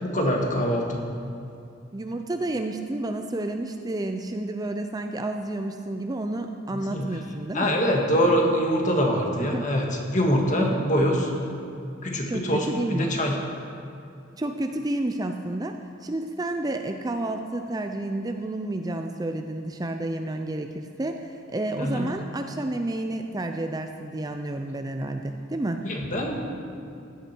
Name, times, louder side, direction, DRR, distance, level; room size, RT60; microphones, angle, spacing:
voice 1, 0.0-1.0 6.7-7.1 7.5-11.3 12.0-13.3 21.8-22.1 25.8-26.5, equal, 40° left, 0 dB, 1.8 m, -24 dB
voice 2, 1.9-7.8 9.4-9.7 10.6-10.9 12.3-13.1 14.4-25.8, right 1 dB, 20° right, 5 dB, 0.5 m, -30 dB
16.0 x 11.0 x 4.5 m, 2.6 s
head